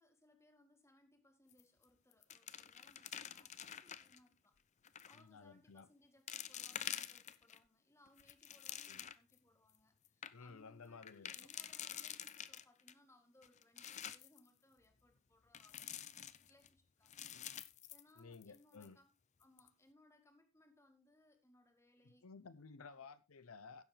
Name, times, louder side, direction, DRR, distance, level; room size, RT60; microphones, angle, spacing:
voice 1, 0.0-4.6 4.8-17.1 17.5-19.1 19.4-22.3 22.8-23.1, left 1 dB, 15° left, 1.8 m, -69 dB
sound 1, 1.5-1.8 2.1-4.2 4.8-5.2 5.8-5.9 6.3-7.6 8.1-9.3 9.7-9.8 10.0-10.3 11.0-12.9 13.4-14.4 15.5-16.7 17.1-18.6 18.8-18.9 19.4-19.7, left 10 dB, 35° left, 0.5 m, -48 dB
voice 2, 5.1-5.9 8.9-9.0 10.3-11.4 17.3-17.5 18.2-19.0 22.0-23.8, left 4 dB, 85° left, 0.7 m, -55 dB
16.0 x 7.0 x 3.3 m
head